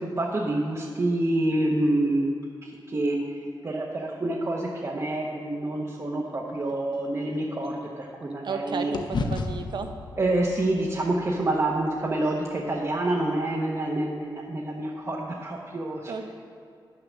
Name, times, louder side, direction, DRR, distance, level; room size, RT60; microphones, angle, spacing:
voice 1, 0.0-3.3 3.6-8.9 10.2-16.3, right 1 dB, 35° right, -3 dB, 0.9 m, -27 dB
sound 1, 6.2-8.6 8.9-13.2, left 3 dB, 65° left, 0.7 m, -36 dB
voice 2, 8.4-9.9 16.1-16.3, right 5 dB, 65° right, 6 dB, 0.8 m, -33 dB
9.5 x 6.6 x 6.2 m, 2.3 s
wide cardioid pair, 130°, 8 cm